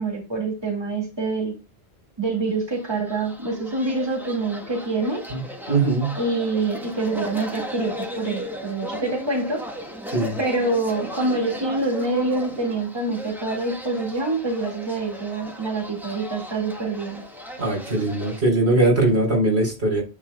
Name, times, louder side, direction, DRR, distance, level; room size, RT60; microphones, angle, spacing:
voice 1, 0.0-1.6 2.2-5.2 6.2-9.6 10.4-17.2, right 3 dB, 25° right, 0 dB, 2.0 m, -26 dB
sound 1, 2.6-18.4, equal, ahead, 1.5 m, -36 dB
voice 2, 5.7-6.1 10.1-10.4 17.6-20.0, right 2 dB, 75° right, -1 dB, 4.0 m, -20 dB
9.6 x 6.5 x 2.2 m, 0.30 s
omnidirectional pair, 1.1 m